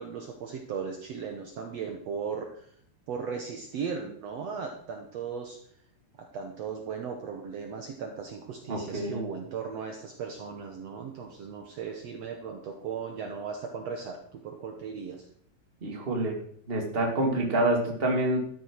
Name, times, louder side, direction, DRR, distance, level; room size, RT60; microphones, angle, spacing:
voice 1, 0.0-2.7 3.1-5.6 6.2-15.3, right 6 dB, 80° right, 4 dB, 1.4 m, -37 dB
voice 2, 8.7-9.2 15.8-16.4 16.7-18.4, right 1 dB, 20° right, 2 dB, 1.6 m, -27 dB
13.0 x 11.0 x 4.7 m, 0.62 s
omnidirectional pair, 4.8 m